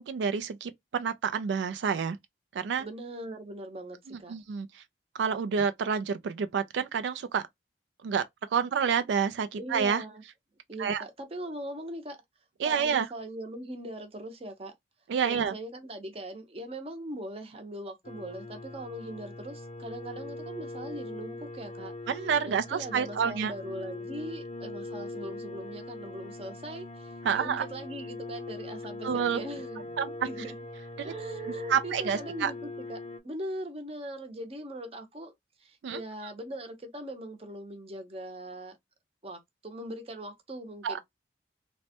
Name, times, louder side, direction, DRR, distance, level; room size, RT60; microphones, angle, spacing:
voice 1, 0.0-2.2 2.5-2.9 4.1-4.8 5.1-7.5 8.0-10.0 10.8-11.0 12.6-13.1 15.1-15.5 22.1-23.5 27.2-27.7 29.0-29.4 30.0-30.1 31.0-31.1 31.7-32.5 35.8-36.0 40.8-41.0, right 6 dB, 85° right, 0.3 m, -29 dB
voice 2, 2.8-4.3 9.6-10.2 10.7-12.2 12.6-14.7 15.2-21.9 22.4-30.5 31.0-35.3 35.6-38.8 39.2-41.0, right 1 dB, 35° right, 0.7 m, -40 dB
sound 1, 18.0-33.2, left 2 dB, 40° left, 0.4 m, -41 dB
3.0 x 2.1 x 2.8 m
head